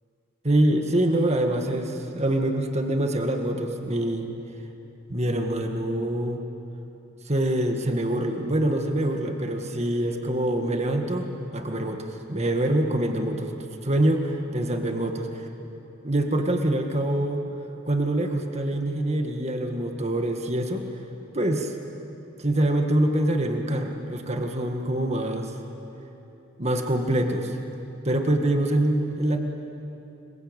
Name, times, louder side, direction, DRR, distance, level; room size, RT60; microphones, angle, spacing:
voice 1, 0.4-4.3 5.1-6.4 7.2-13.5 13.8-14.2 14.5-15.4 16.0-17.4 17.8-20.9 21.3-21.7 22.4-25.5 26.6-27.6 28.0-29.4, right 1 dB, 35° right, 4 dB, 1.8 m, -25 dB
26.0 x 23.0 x 9.0 m, 2.9 s
head